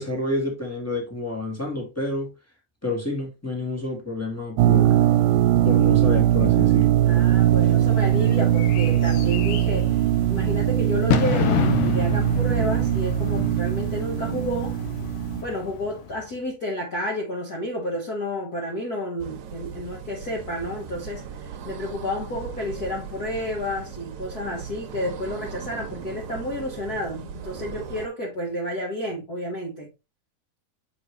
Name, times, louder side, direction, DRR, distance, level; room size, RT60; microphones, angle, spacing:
voice 1, 0.0-2.3 2.8-5.0 5.6-6.9, left 2 dB, 10° left, 1.0 m, -29 dB
sound 1, 4.6-15.4, right 12 dB, 85° right, 2.2 m, -20 dB
voice 2, 7.0-10.0 10.3-14.8 15.4-29.9, left 1 dB, 55° left, 1.0 m, -31 dB
Bird / Fireworks, 7.1-16.3, left 8 dB, 75° left, 2.3 m, -30 dB
sound 2, 19.2-28.1, right 7 dB, 70° right, 2.1 m, -38 dB
7.0 x 4.8 x 3.1 m
omnidirectional pair, 3.9 m